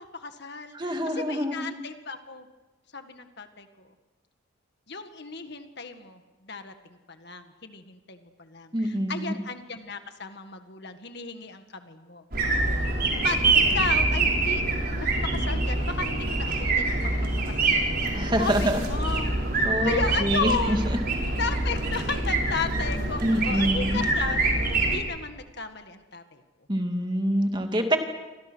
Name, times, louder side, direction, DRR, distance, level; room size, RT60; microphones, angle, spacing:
voice 1, 0.0-2.5 2.9-3.9 4.9-12.2 13.2-14.6 15.0-17.0 17.6-18.0 18.4-19.3 19.8-20.8 21.4-26.4, left 4 dB, 50° left, 7 dB, 1.8 m, -34 dB
voice 2, 0.7-1.7 8.7-9.4 18.1-18.8 19.6-21.0 23.2-24.0 26.7-28.0, equal, 20° right, 4 dB, 2.5 m, -26 dB
sound 1, 12.3-25.0, right 2 dB, 45° right, 5.9 m, -25 dB
29.5 x 25.5 x 6.3 m, 1.2 s
head